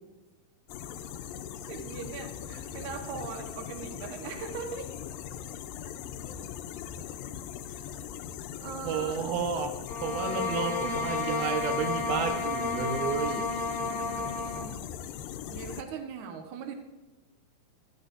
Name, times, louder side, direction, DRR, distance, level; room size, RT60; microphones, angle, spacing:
sound 1, 0.7-15.8, left 9 dB, 85° left, 2.4 m, -40 dB
voice 1, 1.6-5.0 7.6-7.9 8.6-9.3 13.8-14.8 15.5-16.7, right 6 dB, 60° right, 4 dB, 2.6 m, -40 dB
voice 2, 8.8-9.7 10.0-13.4, right 6 dB, 90° right, 5 dB, 3.1 m, -31 dB
sound 2, 9.9-14.7, left 4 dB, 25° left, 1.3 m, -32 dB
25.0 x 12.0 x 2.7 m, 1.2 s
omnidirectional pair, 4.2 m